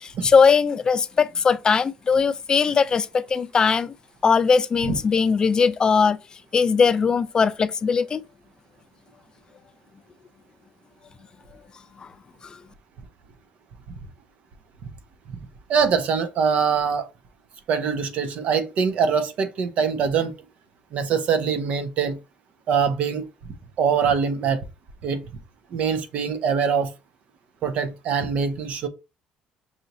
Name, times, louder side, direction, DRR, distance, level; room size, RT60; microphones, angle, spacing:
voice 1, 0.0-3.9 4.2-6.2 6.5-8.2, left 5 dB, 30° left, 0.4 m, -20 dB
voice 2, 15.7-17.0 17.7-20.3 20.9-22.2 22.7-23.2 23.8-24.6 25.0-25.2 25.7-26.9 27.6-28.9, right 6 dB, 60° right, 0.7 m, -23 dB
5.5 x 2.6 x 2.9 m
cardioid pair, 95°, 2 cm